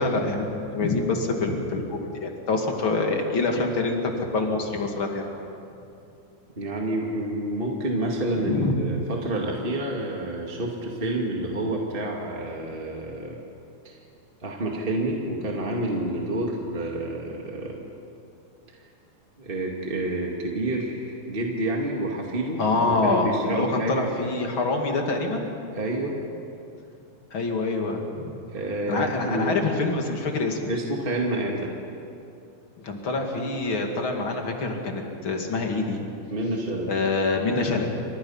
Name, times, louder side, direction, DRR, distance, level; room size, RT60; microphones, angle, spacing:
voice 1, 0.0-5.3 8.5-8.7 22.6-25.5 27.3-28.4 28.9-30.7 32.8-36.0 36.9-37.9, left 3 dB, 40° left, 2 dB, 2.7 m, -26 dB
voice 2, 6.5-13.4 13.8-14.0 14.4-17.9 19.4-24.0 25.7-26.1 28.5-29.6 30.7-31.7 36.3-36.9, right 1 dB, 20° right, -1 dB, 1.6 m, -28 dB
29.5 x 26.5 x 5.7 m, 2.7 s
omnidirectional pair, 4.3 m